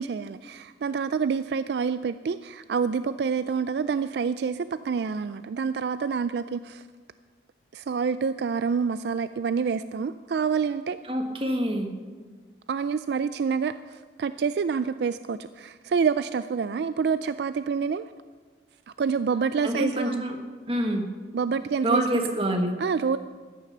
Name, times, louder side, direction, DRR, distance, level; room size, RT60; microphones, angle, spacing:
voice 1, 0.0-6.8 7.7-11.0 12.7-18.1 19.0-20.2 21.3-22.3 22.8-23.2, right 6 dB, 65° right, 13 dB, 0.3 m, -27 dB
voice 2, 11.1-11.9 19.6-20.4 20.7-21.1 21.8-22.7, right 1 dB, 30° right, 4 dB, 1.4 m, -26 dB
14.0 x 9.9 x 6.6 m, 1.5 s
head